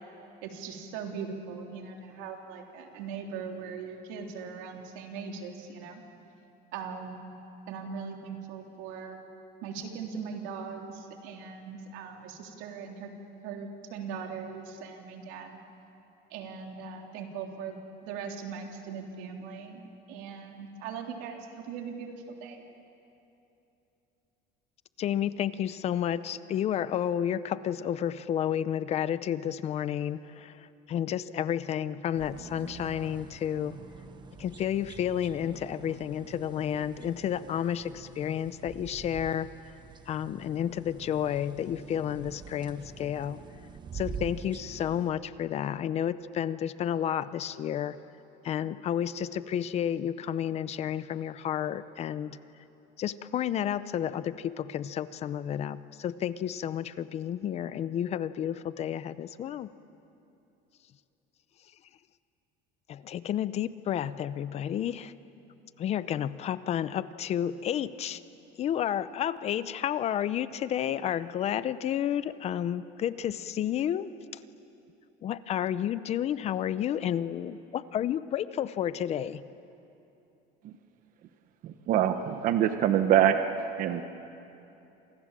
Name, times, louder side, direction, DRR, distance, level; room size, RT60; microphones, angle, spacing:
voice 1, 0.4-6.0 6.7-7.2 7.7-9.2 9.6-13.1 13.4-15.6 16.3-17.8 18.0-19.8 20.1-21.4 21.7-22.6, right 6 dB, 90° right, 2 dB, 3.5 m, -40 dB
voice 2, 25.0-33.8 34.4-39.5 40.1-43.4 43.9-48.0 48.4-52.4 53.0-59.7 62.9-65.1 65.8-68.2 68.6-74.1 75.2-79.5, left 10 dB, 35° left, 15 dB, 0.6 m, -31 dB
sound 1, 32.2-45.1, right 6 dB, 25° right, 1.1 m, -46 dB
voice 3, 81.6-83.5 83.8-84.0, right 10 dB, 50° right, 8 dB, 1.0 m, -24 dB
29.5 x 26.5 x 7.5 m, 2.9 s
cardioid pair, 165°, 18 cm